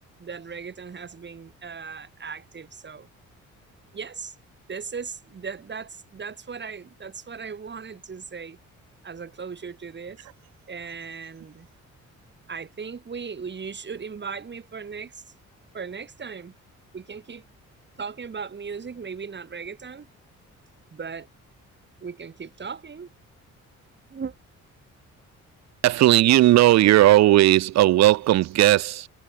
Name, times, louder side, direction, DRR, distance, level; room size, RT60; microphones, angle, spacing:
voice 1, 0.2-3.1 3.9-4.3 4.7-8.6 9.0-10.3 10.7-11.7 12.5-15.2 15.7-16.5 16.9-17.4 18.0-20.1 20.9-21.3 22.0-23.1 24.1-24.4, right 5 dB, 35° right, 3.1 m, -37 dB
voice 2, 25.8-29.1, right 15 dB, 60° right, 0.5 m, -16 dB
cardioid pair, 90°, 30 cm